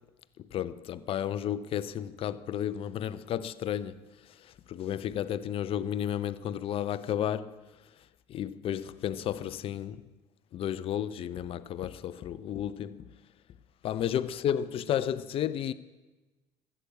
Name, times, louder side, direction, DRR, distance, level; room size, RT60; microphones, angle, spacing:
voice 1, 0.5-4.0 4.7-7.6 8.3-10.0 10.5-13.1 13.8-15.7, left 10 dB, 45° left, 0.6 m, -32 dB
13.0 x 8.4 x 8.3 m
hypercardioid pair, 75°, 13 cm